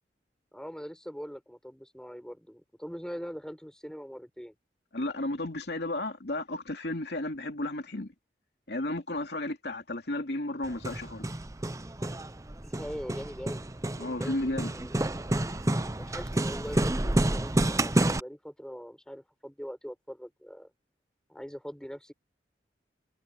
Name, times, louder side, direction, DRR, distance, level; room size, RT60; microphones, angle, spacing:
voice 1, 0.5-4.6 12.6-13.6 13.9-14.9 16.0-20.7 21.3-22.1, equal, 5° left, 6.5 m, -42 dB
voice 2, 4.9-8.1 8.7-11.3 14.0-14.7, left 1 dB, 65° left, 2.8 m, -33 dB
Hammer, 10.6-18.2, right 1 dB, 20° right, 0.7 m, -29 dB
head